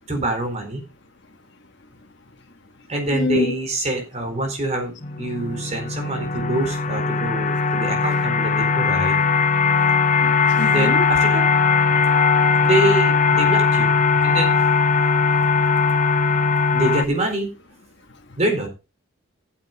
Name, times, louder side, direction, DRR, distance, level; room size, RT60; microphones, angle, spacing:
voice 1, 0.1-0.8 2.9-9.2 10.7-11.5 12.6-14.0 14.2-14.7 16.7-17.5 18.4-18.7, right 2 dB, 30° right, 4.1 m, -25 dB
voice 2, 3.1-3.5 10.2-11.0, left 3 dB, 55° left, 1.3 m, -25 dB
sound 1, 5.0-17.0, left 5 dB, 35° left, 0.9 m, -19 dB
14.5 x 7.9 x 4.0 m
head